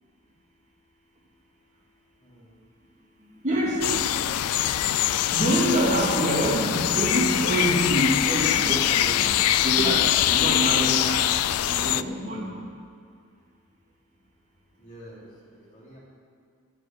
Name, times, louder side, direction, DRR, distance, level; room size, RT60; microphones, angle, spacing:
voice 1, 2.2-2.6 14.8-16.0, right 1 dB, 35° left, -5 dB, 3.6 m, -48 dB
voice 2, 3.4-3.8 5.3-9.3 9.6-11.2 11.7-12.5, right 1 dB, 35° right, -4 dB, 2.5 m, -26 dB
sound 1, 3.8-12.0, left 12 dB, 90° left, 0.4 m, -23 dB
11.5 x 7.3 x 9.4 m, 2.2 s
head